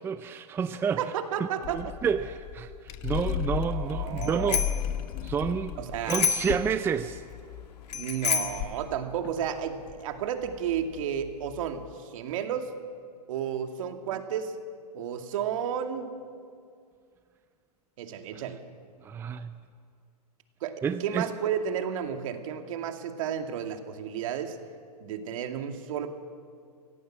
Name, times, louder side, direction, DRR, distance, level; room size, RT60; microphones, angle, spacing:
voice 1, 0.0-1.0 1.4-4.7 5.2-5.8 6.1-7.2 18.3-18.4 19.0-19.6 20.8-21.3, right 6 dB, 10° right, 10 dB, 0.5 m, -30 dB
voice 2, 1.0-1.8 3.5-4.6 5.8-6.2 7.9-12.7 13.3-14.6 14.9-16.1 18.0-18.6 20.6-24.6 25.0-26.1, right 8 dB, 55° right, 5 dB, 2.4 m, -32 dB
sound 1, 1.6-11.9, left 10 dB, 35° left, 1.1 m, -36 dB
Bicycle bell, 4.2-4.9 6.1-6.6 7.9-8.7, left 6 dB, 80° left, 2.2 m, -28 dB
26.5 x 17.0 x 7.7 m, 2.2 s
hypercardioid pair, 135°, 20 cm